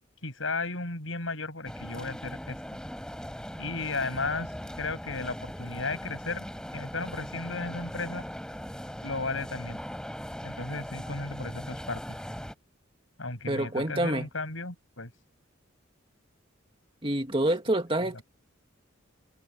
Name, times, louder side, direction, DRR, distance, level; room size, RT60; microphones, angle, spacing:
voice 1, 0.2-2.6 3.6-4.5 4.8-6.5 6.7-8.2 9.0-9.8 10.4-12.0 13.2-15.1 18.1-18.2, left 3 dB, 70° left, 7.4 m, -34 dB
sound 1, 1.6-12.5, equal, 5° left, 3.9 m, -40 dB
voice 2, 13.5-14.3 17.0-18.2, right 1 dB, 25° right, 2.0 m, -27 dB
head